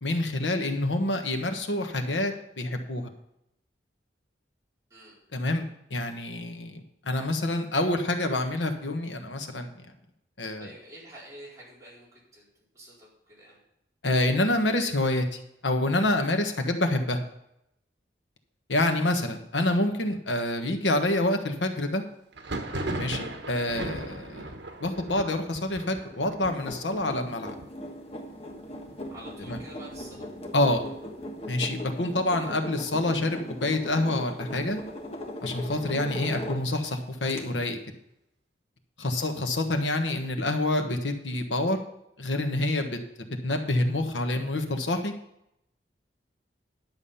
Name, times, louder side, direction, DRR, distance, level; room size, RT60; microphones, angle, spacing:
voice 1, 0.0-3.1 5.3-5.6 5.9-9.7 10.4-10.7 14.0-17.2 18.7-22.0 23.0-24.5 24.8-27.5 29.5-29.6 30.5-30.8 31.5-34.8 35.4-37.8 39.0-41.8 42.2-43.0 43.4-45.1, left 1 dB, 90° left, 6 dB, 1.3 m, -27 dB
voice 2, 10.6-12.5 12.7-13.6 29.1-30.3 39.1-39.3, right 1 dB, 20° right, -7 dB, 4.4 m, -48 dB
Thunder, 22.3-31.8 32.1-32.8 33.0-34.0 34.4-36.1, right 2 dB, 80° right, 1.2 m, -40 dB
sound 1, 26.4-36.9 37.3-37.4, left 1 dB, 35° left, 1.3 m, -39 dB
11.0 x 7.1 x 5.6 m, 0.80 s
head